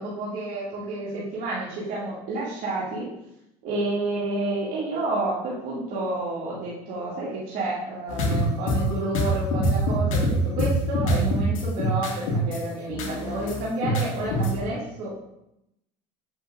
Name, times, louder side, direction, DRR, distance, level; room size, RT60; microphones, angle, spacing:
voice 1, 0.0-3.1 3.6-15.1, right 2 dB, 60° right, -8 dB, 2.4 m, -30 dB
sound 1, 8.1-12.6 12.9-13.5 13.8-14.5, left 1 dB, 80° left, 1.8 m, -24 dB
8.8 x 7.0 x 2.5 m, 0.84 s
hypercardioid pair, 85°, 17 cm